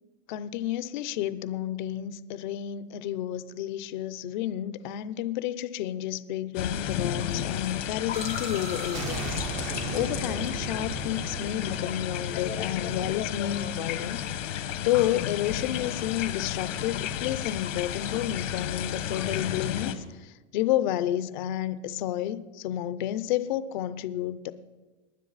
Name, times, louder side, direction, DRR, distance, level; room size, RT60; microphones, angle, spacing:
voice 1, 0.3-9.4 9.9-14.2 14.8-20.0 20.5-24.5, left 12 dB, 40° left, 15 dB, 0.6 m, -30 dB
sound 1, 6.5-19.9, left 10 dB, 75° left, 1.3 m, -32 dB
sound 2, 8.1-13.9, right 5 dB, 20° right, 0.5 m, -38 dB
19.0 x 10.0 x 4.0 m, 1.2 s
supercardioid pair, 160°, 38 cm